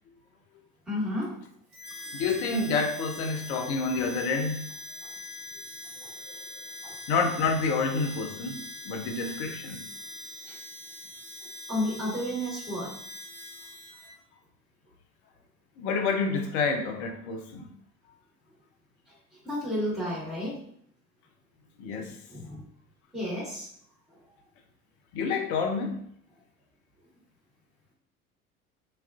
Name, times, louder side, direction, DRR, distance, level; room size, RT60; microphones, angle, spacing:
voice 1, 0.9-1.4 5.0-5.1 5.9-6.5 6.8-6.9 10.5-10.6 11.7-13.0 19.3-20.6 22.3-22.6 23.1-23.7 24.1-24.2, left 1 dB, ahead, -10 dB, 1.1 m, -32 dB
Harmonica, 1.7-14.1, left 1 dB, 35° right, 1.1 m, -43 dB
voice 2, 2.1-4.6 7.1-9.8 15.8-17.7 21.8-22.2 25.1-26.0, left 4 dB, 50° left, 4 dB, 0.6 m, -28 dB
2.4 x 2.3 x 2.4 m, 0.68 s
figure-of-eight pair, 75°, 43 cm